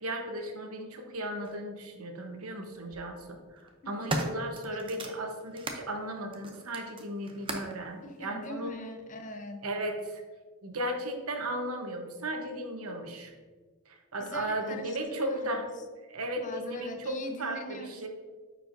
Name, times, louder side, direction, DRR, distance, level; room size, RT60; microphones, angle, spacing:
voice 1, 0.0-3.6 3.9-8.7 9.6-10.2 10.6-13.3 13.9-15.7 16.1-18.1, right 1 dB, 85° right, 3 dB, 1.0 m, -35 dB
sound 1, 1.4-1.6 2.7-3.0 3.6-5.9 6.3-7.8 8.7-8.8, right 2 dB, 25° right, 0.6 m, -37 dB
voice 2, 3.8-4.3 8.0-9.7 14.2-15.7 16.4-18.1, left 1 dB, 35° left, 6 dB, 0.6 m, -42 dB
9.4 x 4.6 x 2.6 m, 1.4 s
head